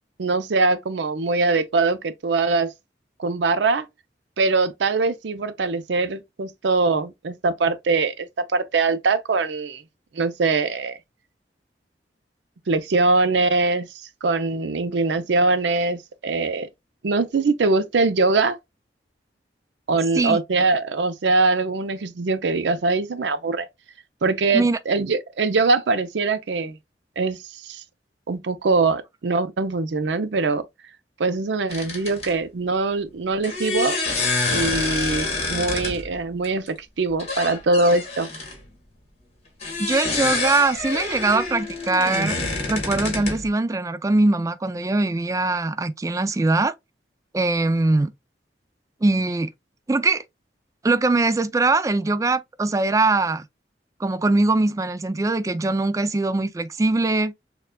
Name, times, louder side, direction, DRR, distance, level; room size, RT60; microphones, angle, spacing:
voice 1, 0.2-2.7 3.2-3.9 4.4-9.8 10.1-11.0 12.7-13.9 14.2-16.7 17.0-18.6 19.9-23.7 24.2-26.8 27.2-27.8 28.3-30.6 31.2-34.0 34.5-38.3, right 3 dB, 90° right, 0.5 m, -22 dB
sound 1, 31.7-32.3 33.4-36.1 36.4-36.7 37.1-38.6 39.6-43.5, left 3 dB, 35° left, 1.5 m, -27 dB
voice 2, 39.8-42.4 42.7-46.7 47.3-48.1 49.0-49.5 49.9-50.2 50.8-53.5 54.0-57.3, right 2 dB, 20° right, 0.3 m, -21 dB
6.5 x 2.3 x 2.2 m
head